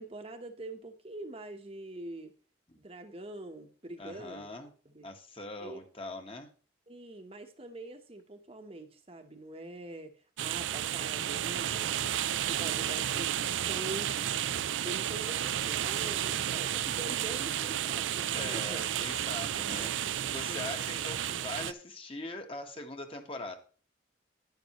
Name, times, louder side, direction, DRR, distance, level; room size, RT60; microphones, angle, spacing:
voice 1, 0.0-2.3 2.7-5.1 5.6-5.8 6.9-11.9 12.4-14.4 14.8-18.9 19.7-21.0, right 1 dB, 30° right, 1.0 m, -44 dB
voice 2, 4.0-4.7 5.0-6.5 18.3-23.6, left 2 dB, 30° left, 1.4 m, -42 dB
sound 1, 10.4-21.7, right 10 dB, 80° right, 0.4 m, -32 dB
10.5 x 10.5 x 3.0 m
head